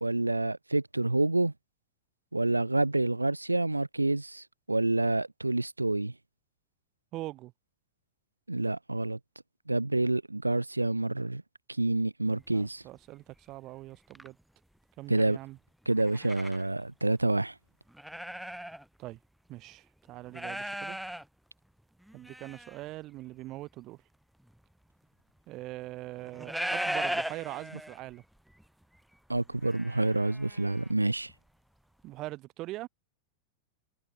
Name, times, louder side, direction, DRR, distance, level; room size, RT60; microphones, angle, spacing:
voice 1, 0.0-1.5 2.3-6.1 8.5-9.2 9.7-11.4 11.8-12.8 15.1-15.4 15.9-17.5 29.3-31.3, right 2 dB, 85° right, 0.8 m, -28 dB
voice 2, 7.1-7.5 12.3-14.4 15.0-15.6 19.0-19.2 19.5-21.0 22.1-24.0 25.5-28.2 32.0-32.9, right 17 dB, 40° right, 0.9 m, -42 dB
sound 1, 12.5-12.6 13.3-13.4 14.0-14.3 15.9-16.7 17.2-17.3 17.9-18.8 19.2-19.3 20.3-21.2 22.0-22.8 24.5-24.6 26.2-28.1 28.5-28.6 28.9-30.9 31.3-31.4, equal, ahead, 0.4 m, -37 dB
figure-of-eight pair, 90°, 0 cm